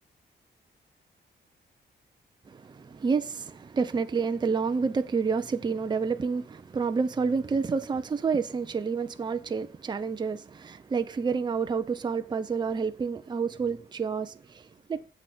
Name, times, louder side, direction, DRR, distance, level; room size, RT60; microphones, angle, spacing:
voice 1, 2.5-14.6 14.9-15.0, right 5 dB, 25° right, 0.7 m, -29 dB
9.6 x 7.9 x 4.2 m
wide cardioid pair, 170°, 18 cm